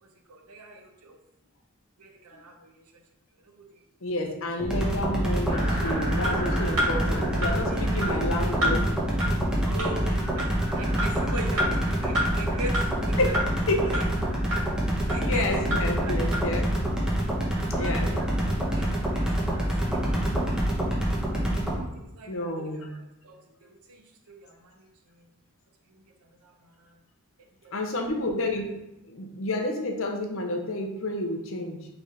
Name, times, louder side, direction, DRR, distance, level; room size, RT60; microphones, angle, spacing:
voice 1, 0.0-1.2 2.0-3.0 3.4-3.8 7.7-8.8 9.6-13.3 13.9-14.1 15.1-15.6 16.0-16.2 17.6-19.6 19.9-20.4 20.8-21.1 21.7-22.8 23.2-25.3 25.9-27.0 27.4-28.0, right 2 dB, 85° right, 3 dB, 0.7 m, -42 dB
voice 2, 4.0-8.9 13.2-13.3 13.7-13.9 14.5-14.7 15.2-16.7 17.8-18.1 22.3-22.9 27.7-28.7 29.1-31.8, left 1 dB, 65° left, 3 dB, 0.7 m, -30 dB
sound 1, 4.6-21.8, right 1 dB, 5° right, 0.7 m, -26 dB
sound 2, 5.5-17.2 17.5-20.7, right 1 dB, 35° left, 1.2 m, -41 dB
sound 3, 6.2-6.3 6.8-6.9 7.4-7.5 8.0-8.1 8.6-8.7 9.2-9.3 9.8-9.9 10.4-10.5 11.0-11.1 11.6-11.7 12.2-12.3 12.7-12.8 13.3-13.5 13.9-14.0 14.5-14.6 15.1-15.2 15.7-15.8 16.3-16.4, equal, 65° right, 1.7 m, -26 dB
3.8 x 3.4 x 4.1 m, 0.87 s
head